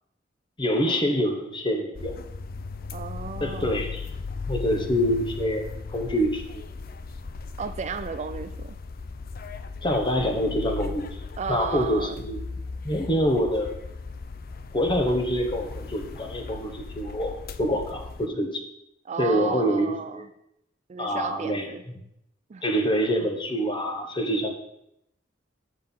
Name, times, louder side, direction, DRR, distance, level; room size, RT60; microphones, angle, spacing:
voice 1, 0.6-2.2 3.4-4.1 4.5-6.6 9.8-11.1 11.5-12.4 12.8-13.8 14.7-18.6 19.2-20.2 21.0-21.7 22.6-24.5, equal, 25° left, 4 dB, 1.2 m, -26 dB
sound 1, 2.0-18.3, left 4 dB, 50° left, 0.5 m, -37 dB
voice 2, 2.9-3.8 7.6-8.8 11.4-12.2 19.1-20.3 20.9-21.8 22.5-22.6, right 5 dB, 35° right, 10 dB, 0.4 m, -33 dB
7.8 x 6.6 x 5.5 m, 0.79 s
head